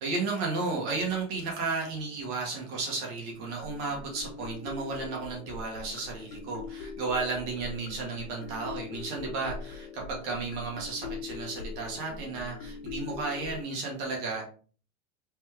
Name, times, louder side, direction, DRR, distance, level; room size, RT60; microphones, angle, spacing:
voice 1, 0.0-14.5, right 4 dB, 55° right, -1 dB, 1.5 m, -33 dB
sound 1, 3.3-13.6, left 5 dB, 65° left, 1.0 m, -42 dB
3.5 x 3.2 x 3.0 m, 0.41 s
supercardioid pair, 160°, 38 cm